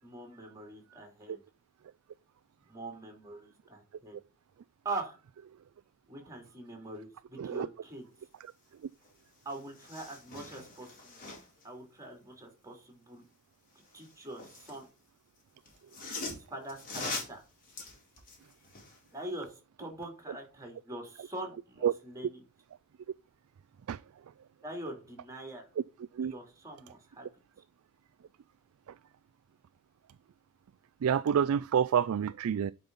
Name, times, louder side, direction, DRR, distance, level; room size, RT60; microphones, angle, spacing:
voice 1, 0.0-1.4 2.7-4.2 4.8-5.2 6.1-8.1 9.4-11.4 11.6-13.2 13.9-14.9 16.5-17.4 19.1-22.4 24.6-25.7 26.2-27.3, right 2 dB, 15° right, 3.3 m, -43 dB
sound 1, 9.0-9.1 9.4-11.6 13.8-14.9 15.7-19.0 19.4-19.5, left 3 dB, 40° left, 3.9 m, -42 dB
voice 2, 31.0-32.7, right 8 dB, 70° right, 0.3 m, -28 dB
11.5 x 5.3 x 4.1 m
head